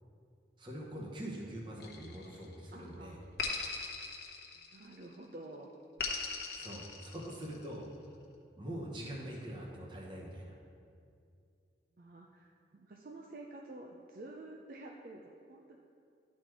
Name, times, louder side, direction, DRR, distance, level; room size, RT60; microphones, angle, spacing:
voice 1, 0.6-3.2 6.5-7.9 8.6-10.5, right 1 dB, 25° right, -2 dB, 1.1 m, -43 dB
sound 1, 1.8-2.6 3.4-5.0 6.0-7.7, left 4 dB, 60° left, 0.9 m, -39 dB
voice 2, 2.7-3.2 4.5-5.7 12.0-15.8, right 2 dB, 50° right, 0 dB, 0.5 m, -50 dB
11.5 x 4.3 x 4.5 m, 2.4 s
head